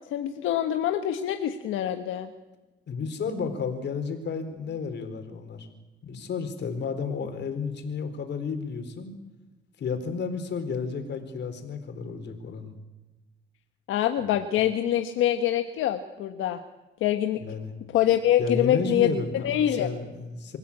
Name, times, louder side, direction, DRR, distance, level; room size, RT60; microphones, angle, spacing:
voice 1, 0.1-2.3 13.9-16.6 17.0-17.4 17.9-19.1 19.4-19.9, left 11 dB, 90° left, 6 dB, 1.3 m, -25 dB
voice 2, 2.9-5.7 6.0-9.1 9.8-12.8 17.4-17.7 18.4-20.6, left 5 dB, 60° left, 7 dB, 4.2 m, -32 dB
25.5 x 15.5 x 8.7 m, 1.1 s
cardioid pair, 90°, 20 cm